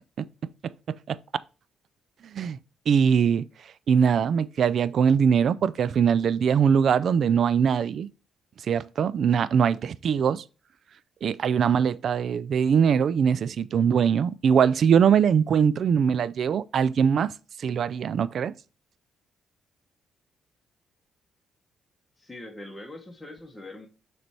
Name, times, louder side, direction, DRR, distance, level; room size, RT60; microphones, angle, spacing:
voice 1, 0.6-1.2 2.2-2.6 2.9-3.5 3.9-8.1 8.6-10.4 11.2-17.3 17.6-18.5, right 7 dB, 60° right, 0.3 m, -22 dB
voice 2, 22.2-23.9, left 2 dB, 10° left, 1.2 m, -42 dB
6.7 x 3.3 x 4.3 m
cardioid pair, 90°, 0 cm